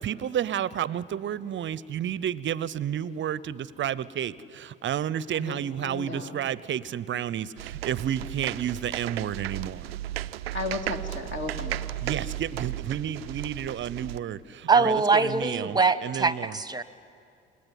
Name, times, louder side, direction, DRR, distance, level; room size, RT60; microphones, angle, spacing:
voice 1, 0.0-9.9 12.0-16.6, right 9 dB, 40° right, 20 dB, 0.8 m, -31 dB
voice 2, 5.8-6.3 10.5-11.8, left 3 dB, 40° left, 3 dB, 2.8 m, -34 dB
sound 1, 7.6-14.2, right 13 dB, 80° right, 0.5 m, -35 dB
voice 3, 14.7-16.8, right 4 dB, 15° right, 15 dB, 1.2 m, -23 dB
27.5 x 21.0 x 9.6 m, 2.4 s
figure-of-eight pair, 55°, 30 cm